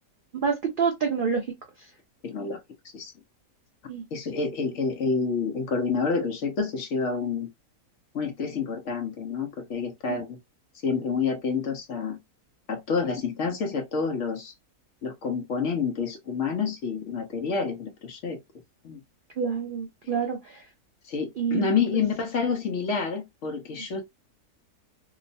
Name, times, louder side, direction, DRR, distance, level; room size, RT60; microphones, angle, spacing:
voice 1, 0.4-1.5 3.9-4.0 10.1-10.2 19.4-20.6 21.4-21.8, right 6 dB, 85° right, 0.4 m, -27 dB
voice 2, 2.2-2.6 2.9-3.1 4.1-7.5 8.1-10.4 10.8-12.2 12.7-14.5 15.0-18.4 18.8-19.0 21.0-24.0, left 5 dB, 60° left, 0.8 m, -28 dB
2.9 x 2.0 x 2.5 m
omnidirectional pair, 1.6 m